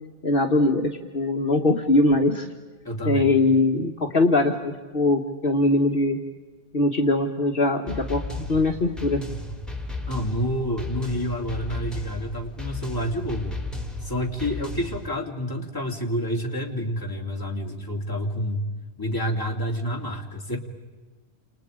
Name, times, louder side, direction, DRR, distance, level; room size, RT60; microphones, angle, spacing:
voice 1, 0.2-2.5 3.1-6.2 6.7-8.2 8.5-9.2, left 2 dB, 50° left, 2 dB, 1.7 m, -21 dB
voice 2, 2.8-3.3 10.1-13.6 14.0-18.6 19.0-20.6, equal, 20° left, 0 dB, 3.0 m, -28 dB
sound 1, 7.9-15.1, left 2 dB, ahead, 3.0 m, -34 dB
29.5 x 29.0 x 5.1 m, 1.3 s
omnidirectional pair, 1.2 m